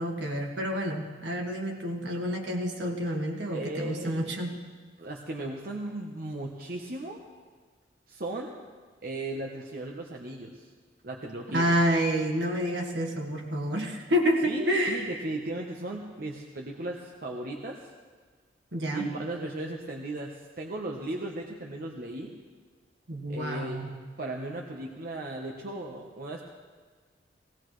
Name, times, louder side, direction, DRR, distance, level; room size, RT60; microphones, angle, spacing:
voice 1, 0.0-4.5 11.5-15.2 18.7-19.1 23.1-23.9, equal, 75° right, 1 dB, 1.8 m, -28 dB
voice 2, 3.5-4.3 5.0-7.2 8.1-8.6 9.0-10.7 11.0-11.7 14.4-17.8 18.9-22.3 23.3-26.4, right 2 dB, 55° right, 0 dB, 1.0 m, -36 dB
18.0 x 17.5 x 3.2 m, 1.5 s
head